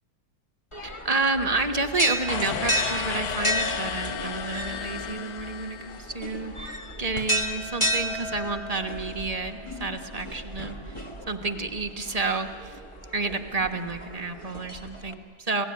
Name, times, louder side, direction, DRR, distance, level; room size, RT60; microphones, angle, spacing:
sound 1, 0.7-15.1, equal, 20° left, 1.1 m, -33 dB
voice 1, 0.8-11.0 11.3-12.8 13.1-15.6, right 3 dB, 25° right, 5 dB, 0.9 m, -30 dB
sound 2, 2.3-6.5, left 8 dB, 60° left, 1.2 m, -34 dB
28.5 x 17.5 x 9.6 m, 2.1 s
omnidirectional pair, 2.1 m